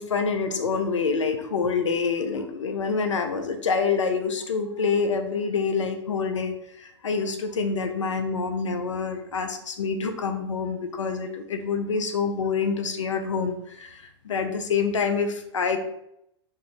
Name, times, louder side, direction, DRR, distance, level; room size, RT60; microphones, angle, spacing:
voice 1, 0.0-15.8, left 5 dB, 90° left, 6 dB, 0.4 m, -27 dB
2.5 x 2.3 x 3.0 m, 0.77 s
hypercardioid pair, 105°, 15 cm